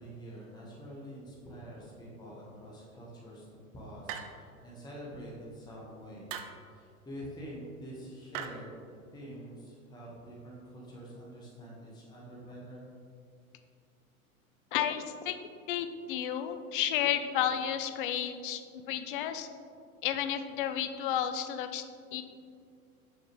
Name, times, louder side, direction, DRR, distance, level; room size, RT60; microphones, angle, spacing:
voice 1, 0.0-3.5 3.7-6.3 6.7-12.9, equal, 10° left, -5 dB, 1.1 m, -46 dB
sound 1, 4.1-4.6 6.3-6.7 8.3-8.5, right 9 dB, 35° right, 0.5 m, -40 dB
voice 2, 14.7-15.4 15.7-18.6 18.9-19.5 20.0-21.8 22.1-22.2, left 10 dB, 40° left, 9 dB, 0.5 m, -32 dB
6.4 x 6.4 x 3.1 m, 2.3 s
figure-of-eight pair, 90°, 44 cm